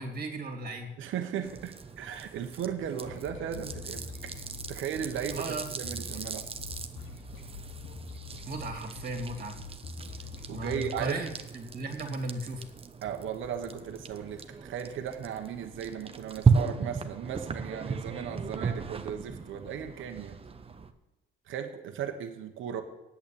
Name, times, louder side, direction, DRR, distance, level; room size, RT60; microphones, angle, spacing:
voice 1, 0.0-0.9 5.3-6.0 8.5-9.6 10.5-12.7, right 2 dB, 45° right, 3 dB, 2.5 m, -36 dB
voice 2, 1.0-4.3 4.7-6.5 10.5-11.2 13.0-20.4 21.5-22.8, right 8 dB, 80° right, 5 dB, 1.2 m, -36 dB
sound 1, 1.4-20.9, right 5 dB, 30° right, 0.9 m, -35 dB
sound 2, 3.0-11.1, left 4 dB, 85° left, 2.1 m, -44 dB
8.5 x 8.4 x 8.8 m, 0.99 s
cardioid pair, 90°, 20 cm